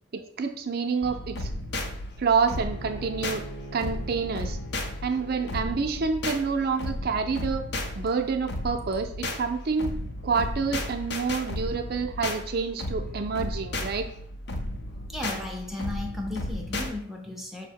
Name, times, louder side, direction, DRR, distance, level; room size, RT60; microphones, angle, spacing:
voice 1, 0.1-1.5 2.2-3.4 3.7-4.6 5.0-7.6 8.0-9.1 9.4-9.9 10.2-14.1, right 5 dB, 50° right, 6 dB, 0.5 m, -28 dB
sound 1, 1.0-16.9, left 1 dB, 55° left, 0.6 m, -34 dB
Bowed string instrument, 2.5-7.5, right 1 dB, 40° left, 1.1 m, -45 dB
voice 2, 15.1-17.7, left 2 dB, ahead, 0 dB, 0.5 m, -35 dB
5.5 x 2.1 x 4.5 m, 0.64 s
head